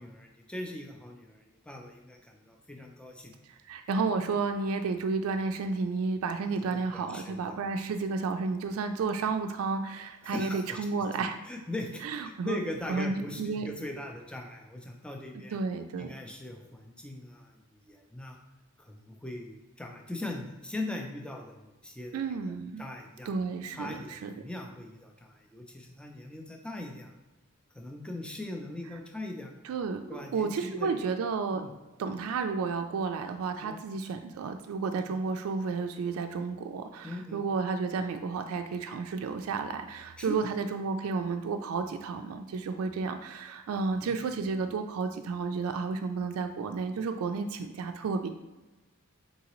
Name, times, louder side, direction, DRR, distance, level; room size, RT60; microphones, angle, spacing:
voice 1, 0.0-3.3 6.6-7.6 10.2-10.8 11.4-15.6 16.0-18.4 18.8-22.2 22.5-22.6 22.8-23.3 23.7-27.1 27.7-29.5 30.1-31.0 31.5-31.7 33.6-33.8 35.0-35.1 37.0-37.5 40.2-40.5 44.0-44.1, left 1 dB, 5° left, 2 dB, 0.4 m, -40 dB
voice 2, 3.5-11.4 12.0-12.6 12.9-13.7 15.3-16.1 22.1-22.9 23.3-24.3 29.6-31.7 32.0-48.3, right 4 dB, 75° right, 6 dB, 0.3 m, -32 dB
4.0 x 3.7 x 3.0 m, 1.1 s
head